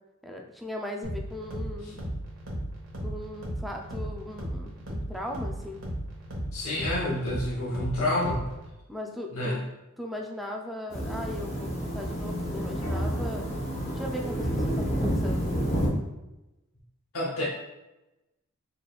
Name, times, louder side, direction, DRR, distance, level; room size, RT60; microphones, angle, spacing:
voice 1, 0.2-2.0 3.0-5.9 8.9-9.6 10.0-13.5 13.9-15.5, left 1 dB, ahead, 1 dB, 0.3 m, -38 dB
sound 1, 1.0-8.7, equal, 65° right, 1.0 m, -36 dB
voice 2, 6.5-8.4 9.3-9.6 17.1-17.4, left 1 dB, 80° left, -4 dB, 0.9 m, -28 dB
sound 2, 10.9-15.9, equal, 30° left, 0.8 m, -29 dB
3.9 x 3.3 x 2.3 m, 0.97 s
head